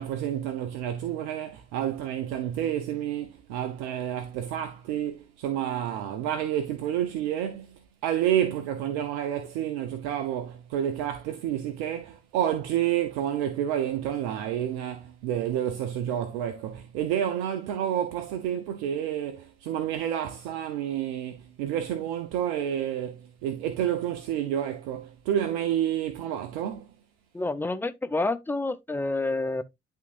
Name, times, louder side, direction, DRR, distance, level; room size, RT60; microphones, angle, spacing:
voice 1, 0.0-26.9, right 10 dB, 70° right, 0.9 m, -29 dB
voice 2, 27.3-29.6, left 2 dB, 5° left, 0.8 m, -28 dB
11.0 x 3.7 x 2.5 m
figure-of-eight pair, 50°, 35 cm